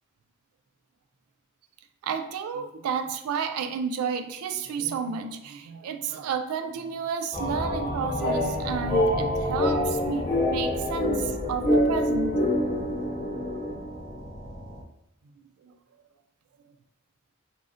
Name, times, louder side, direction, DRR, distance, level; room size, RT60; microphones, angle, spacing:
voice 1, 2.0-12.6 15.6-15.7, right 6 dB, 90° right, 12 dB, 0.3 m, -31 dB
sound 1, 7.3-14.8, left 1 dB, 30° left, 0.7 m, -26 dB
3.7 x 2.0 x 2.5 m, 0.84 s
head